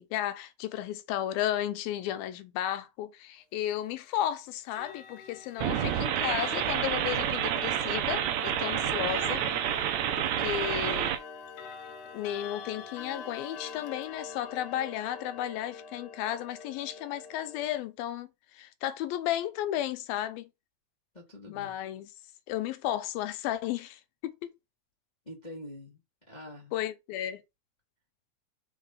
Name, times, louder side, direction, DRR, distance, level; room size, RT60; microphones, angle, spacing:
voice 1, 0.0-9.4 10.2-11.2 12.1-20.5 21.5-22.1 22.5-24.5 26.7-27.4, left 12 dB, 90° left, 2.6 m, -34 dB
Clock, 4.7-17.8, left 6 dB, 70° left, 2.3 m, -44 dB
sound 1, 5.6-11.2, right 11 dB, 80° right, 1.6 m, -29 dB
voice 2, 8.7-9.1 21.1-21.8 25.2-26.0 26.3-26.7, left 1 dB, 20° left, 1.1 m, -45 dB
5.0 x 4.9 x 5.4 m
omnidirectional pair, 4.1 m